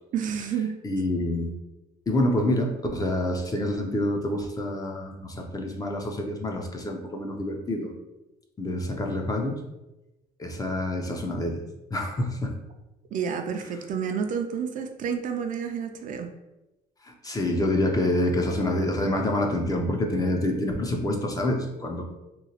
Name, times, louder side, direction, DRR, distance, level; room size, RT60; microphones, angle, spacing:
voice 1, 0.1-0.7 13.1-16.3, right 7 dB, 50° right, 5 dB, 0.4 m, -29 dB
voice 2, 0.8-1.5 2.1-7.9 8.6-9.5 10.4-11.6 11.9-12.5 17.0-22.0, left 1 dB, 20° left, 3 dB, 0.5 m, -27 dB
2.9 x 2.8 x 2.8 m, 0.97 s
cardioid pair, 110°, 17 cm